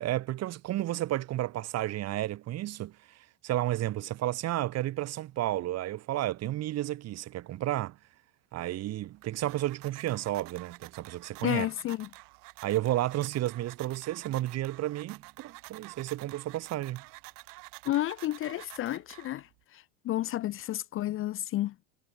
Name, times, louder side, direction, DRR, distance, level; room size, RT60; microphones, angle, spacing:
voice 1, 0.0-8.0 8.5-11.7 12.6-17.0, right 14 dB, 45° right, 2.2 m, -32 dB
sound 1, 9.0-19.6, right 27 dB, 60° right, 5.7 m, -50 dB
voice 2, 11.4-12.1 17.9-21.7, left 14 dB, 35° left, 0.7 m, -31 dB
supercardioid pair, 115°, 37 cm